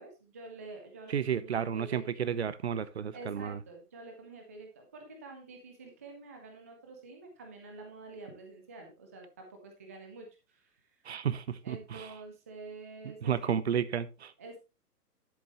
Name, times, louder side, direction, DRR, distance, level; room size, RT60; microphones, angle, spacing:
voice 1, 0.0-2.3 3.0-11.0 11.6-13.5 14.4-14.6, right 3 dB, 10° right, 3 dB, 0.5 m, -48 dB
voice 2, 1.1-3.6 11.1-12.1 13.2-14.3, right 8 dB, 45° right, 16 dB, 0.7 m, -32 dB
10.5 x 8.1 x 3.0 m, 0.28 s
figure-of-eight pair, 125°, 47 cm